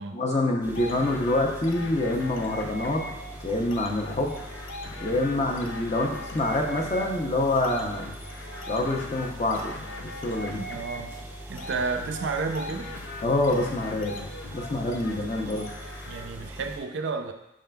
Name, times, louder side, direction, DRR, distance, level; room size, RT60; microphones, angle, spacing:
voice 1, 0.1-3.0 3.4-4.3 5.0-8.0 8.7-9.7 10.2-10.6 13.2-14.1 14.5-15.7, left 2 dB, 35° left, 1 dB, 0.6 m, -26 dB
sound 1, 0.6-16.8, equal, 10° right, 0.4 m, -42 dB
sound 2, 0.7-16.5, left 1 dB, 80° left, 0.6 m, -40 dB
voice 2, 10.5-11.2 11.5-12.9 15.0-15.2 15.5-15.7 16.1-17.3, right 4 dB, 65° right, 5 dB, 0.4 m, -32 dB
6.4 x 3.7 x 2.2 m, 0.84 s
head